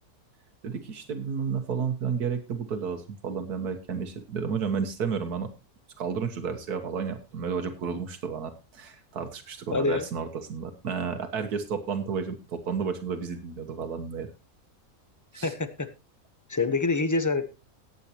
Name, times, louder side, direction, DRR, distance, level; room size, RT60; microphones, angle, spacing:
voice 1, 0.6-5.5 6.0-14.3 15.3-15.5, right 6 dB, 85° right, 7 dB, 1.8 m, -32 dB
voice 2, 9.7-10.0 15.4-15.9 16.5-17.4, left 3 dB, 15° left, 11 dB, 0.7 m, -26 dB
18.0 x 8.2 x 2.9 m, 0.27 s
omnidirectional pair, 1.6 m